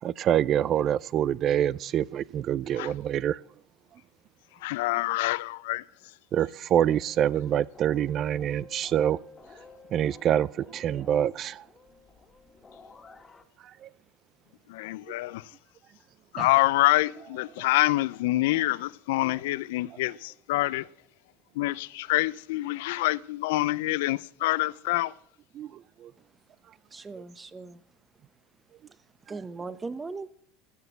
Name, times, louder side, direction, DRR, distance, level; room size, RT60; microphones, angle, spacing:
voice 1, 0.0-3.4 6.3-9.2 9.9-11.6 13.6-13.9 16.4-16.5 25.5-26.1, right 10 dB, 45° right, 0.4 m, -26 dB
voice 2, 4.6-5.8 14.7-15.5 16.3-20.9 21.6-25.1, left 18 dB, 75° left, 0.4 m, -26 dB
sound 1, 6.7-13.4, left 4 dB, 25° left, 1.8 m, -52 dB
voice 3, 26.9-27.9 28.9-30.3, right 4 dB, 20° right, 1.0 m, -39 dB
14.0 x 5.9 x 8.0 m
hypercardioid pair, 90°, 0 cm